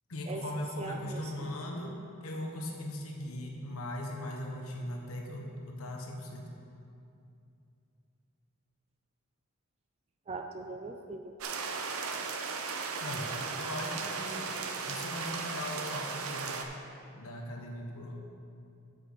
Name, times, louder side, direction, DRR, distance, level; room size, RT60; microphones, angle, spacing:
voice 1, 0.1-6.5 13.0-14.5 14.9-16.6 17.1-18.1, left 1 dB, 85° left, 0 dB, 1.1 m, -39 dB
voice 2, 0.8-2.0 10.3-11.3, right 3 dB, 30° right, 5 dB, 0.3 m, -41 dB
sound 1, 11.4-16.6, right 4 dB, 85° right, 0.7 m, -36 dB
8.3 x 7.9 x 3.9 m, 2.6 s
head